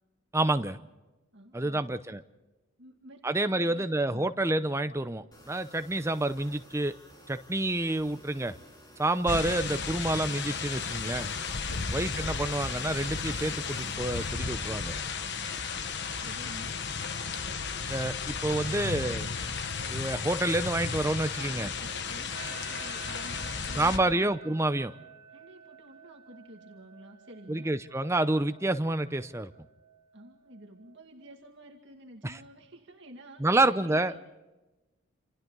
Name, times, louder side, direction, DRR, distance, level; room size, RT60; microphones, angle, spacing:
voice 1, 0.3-0.8 1.5-2.2 3.2-7.0 7.3-8.6 9.0-11.3 11.9-14.9 17.9-19.3 19.9-21.7 23.8-24.9 27.5-29.5 32.2-32.4 33.4-34.1, right 2 dB, 15° right, 10 dB, 0.7 m, -28 dB
voice 2, 1.3-2.0 2.8-4.3 11.6-12.1 16.2-16.8 21.3-24.3 25.3-27.7 30.1-34.2, right 1 dB, 55° right, 2 dB, 2.2 m, -50 dB
sound 1, 5.3-14.3, equal, 20° left, 4.0 m, -54 dB
sound 2, 9.2-24.0, left 5 dB, 55° left, 1.3 m, -34 dB
sound 3, 22.3-31.4, right 7 dB, 80° right, 2.2 m, -51 dB
28.5 x 28.0 x 4.0 m, 1.1 s
head